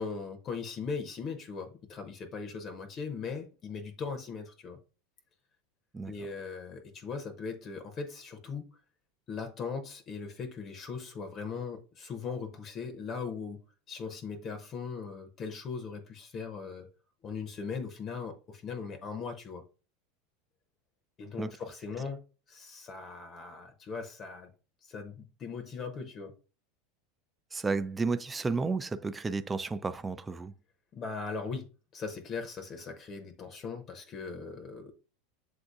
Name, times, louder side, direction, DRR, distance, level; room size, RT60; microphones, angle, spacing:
voice 1, 0.0-4.8 6.1-8.7 9.3-13.6 13.9-16.9 17.2-19.6 21.2-22.2 22.5-24.5 24.8-26.3 30.9-34.9, left 5 dB, 35° left, 0.7 m, -39 dB
voice 2, 27.5-30.5, right 4 dB, 15° right, 0.4 m, -32 dB
7.6 x 2.6 x 2.4 m
hypercardioid pair, 85°, 0 cm